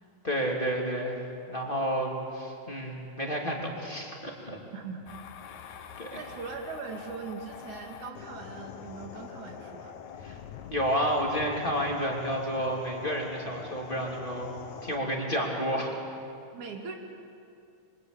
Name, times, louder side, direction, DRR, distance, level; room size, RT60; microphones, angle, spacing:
voice 1, 0.2-4.6 6.0-6.2 10.2-10.4 10.7-14.5 14.8-15.9, equal, 15° left, -1 dB, 3.1 m, -30 dB
voice 2, 4.7-5.1 6.2-9.9 16.5-16.9, right 5 dB, 90° right, 2 dB, 4.0 m, -40 dB
sound 1, 5.1-15.0, left 7 dB, 90° left, 2.6 m, -44 dB
26.0 x 25.0 x 8.8 m, 2.5 s
omnidirectional pair, 3.3 m